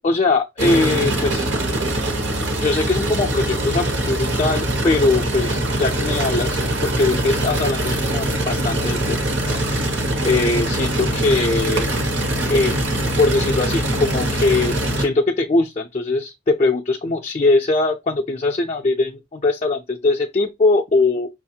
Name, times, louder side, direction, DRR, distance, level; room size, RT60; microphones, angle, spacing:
voice 1, 0.0-1.5 2.6-9.2 9.4-9.6 10.2-11.9 12.5-12.7 13.2-21.3, left 3 dB, 35° left, 0.4 m, -21 dB
sound 1, 0.6-15.1, right 1 dB, 75° right, 1.0 m, -22 dB
5.7 x 2.4 x 2.7 m
head